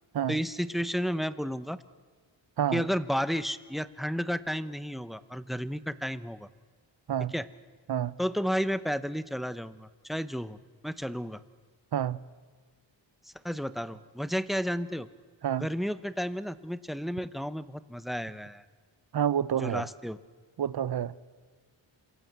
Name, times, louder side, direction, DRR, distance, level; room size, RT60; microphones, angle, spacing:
voice 1, 0.3-1.8 2.7-6.5 7.3-7.4 8.2-10.6 10.8-11.4 13.2-15.1 15.5-18.6 19.6-20.2, equal, ahead, 0.7 m, -32 dB
voice 2, 19.1-19.9 20.6-21.2, right 9 dB, 55° right, 0.8 m, -28 dB
27.0 x 26.0 x 8.1 m
wide cardioid pair, 150°, 46 cm